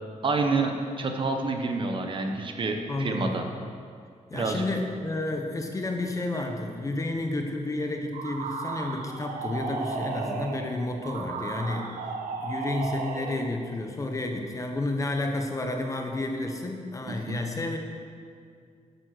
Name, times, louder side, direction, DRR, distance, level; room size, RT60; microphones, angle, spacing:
voice 1, 0.2-3.4 4.3-4.6 17.1-17.4, right 3 dB, 40° right, 4 dB, 1.1 m, -28 dB
voice 2, 2.9-3.4 4.3-12.0 12.4-17.8, left 2 dB, 25° left, 3 dB, 1.0 m, -31 dB
sound 1, 8.1-13.5, right 4 dB, 90° right, 1.2 m, -34 dB
10.5 x 8.7 x 6.6 m, 2.2 s
wide cardioid pair, 170°, 14 cm